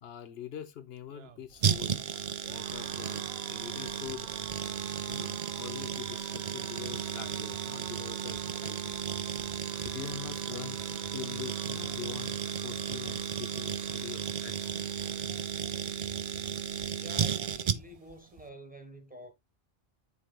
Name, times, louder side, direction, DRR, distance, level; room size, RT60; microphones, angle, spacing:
voice 1, 0.0-2.0 2.5-4.3 5.1-9.1 9.8-14.8, left 9 dB, 80° left, 0.9 m, -44 dB
sound 1, 1.0-16.2 16.5-16.7 17.0-17.8, right 9 dB, 80° right, 0.9 m, -50 dB
sound 2, 1.6-18.1 18.4-18.5, right 7 dB, 55° right, 0.4 m, -34 dB
voice 2, 16.9-19.3, equal, 10° right, 1.3 m, -48 dB
10.5 x 3.9 x 2.2 m
omnidirectional pair, 1.0 m